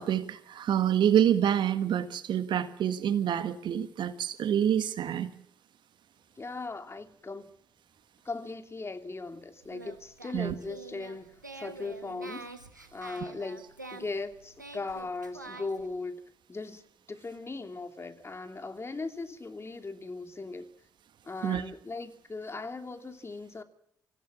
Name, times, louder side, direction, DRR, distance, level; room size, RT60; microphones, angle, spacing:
voice 1, 0.0-5.3 10.3-10.5 21.4-21.6, right 9 dB, 55° right, 1.6 m, -27 dB
voice 2, 6.4-7.5 8.2-12.5 12.9-13.6 13.9-16.2 16.5-20.7 21.2-23.6, left 3 dB, 25° left, 2.9 m, -38 dB
Singing, 9.6-15.9, right 3 dB, 90° right, 1.5 m, -46 dB
26.0 x 16.5 x 7.3 m
figure-of-eight pair, 40°, 10 cm